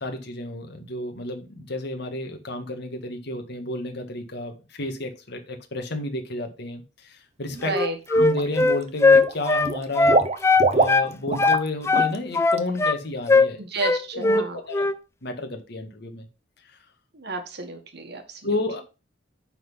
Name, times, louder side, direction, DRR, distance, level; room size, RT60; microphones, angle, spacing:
voice 1, 0.0-7.8 8.1-10.3 10.7-13.6 14.1-14.9 15.2-16.3 18.4-18.8, left 2 dB, 65° left, 1.7 m, -31 dB
Water / Liquid, 7.5-7.8 8.2-8.8 9.1-11.7 11.9-12.2 12.5-12.6, right 3 dB, 35° right, 0.8 m, -25 dB
Wind instrument woodwind instrument, 7.6-11.1 11.4-13.0 13.3-13.5 13.8-14.5 14.7-15.0, left 3 dB, 15° left, 0.4 m, -19 dB
voice 2, 7.6-8.0 13.6-14.6 17.1-18.4, right 3 dB, 60° right, 1.7 m, -31 dB
9.1 x 4.1 x 5.4 m
head